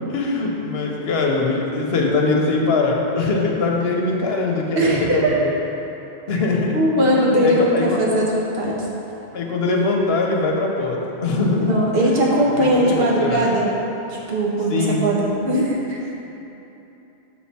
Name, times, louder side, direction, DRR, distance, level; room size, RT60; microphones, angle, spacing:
voice 1, 0.1-5.5 6.3-6.8 7.4-8.0 9.3-13.4 14.7-15.0, left 3 dB, 70° left, 0 dB, 1.0 m, -22 dB
voice 2, 4.7-5.4 6.7-8.8 11.5-13.7 14.1-16.0, right 1 dB, 60° right, -4 dB, 1.3 m, -19 dB
6.2 x 6.0 x 4.2 m, 3.0 s
omnidirectional pair, 1.1 m